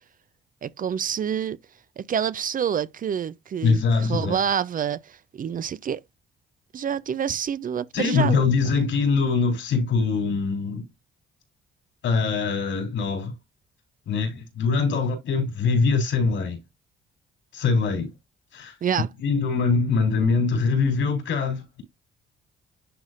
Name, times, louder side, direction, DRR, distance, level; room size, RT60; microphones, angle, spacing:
voice 1, 0.6-1.6 2.0-6.0 6.7-8.5 18.8-19.1, right 8 dB, 45° right, 0.5 m, -27 dB
voice 2, 3.6-4.4 7.9-10.9 12.0-13.3 14.1-16.6 17.5-18.1 18.5-18.7 19.2-21.8, left 4 dB, 75° left, 3.7 m, -23 dB
11.0 x 4.1 x 2.5 m
cardioid pair, 90°, 20 cm